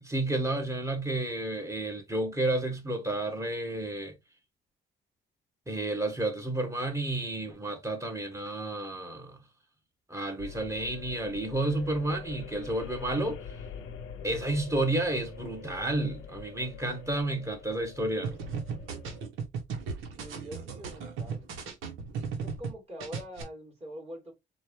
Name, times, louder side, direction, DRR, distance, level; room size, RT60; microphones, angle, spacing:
voice 1, 0.0-4.1 5.7-9.4 10.1-13.4 14.2-18.3, right 2 dB, 15° right, 1.4 m, -31 dB
sound 1, 10.4-19.3, left 6 dB, 90° left, 0.7 m, -45 dB
sound 2, 18.2-22.7 23.0-23.4, right 5 dB, 90° right, 1.1 m, -36 dB
voice 2, 20.2-21.5 22.4-24.3, equal, 30° right, 2.8 m, -44 dB
4.4 x 2.5 x 3.1 m
cardioid pair, 90°, 20 cm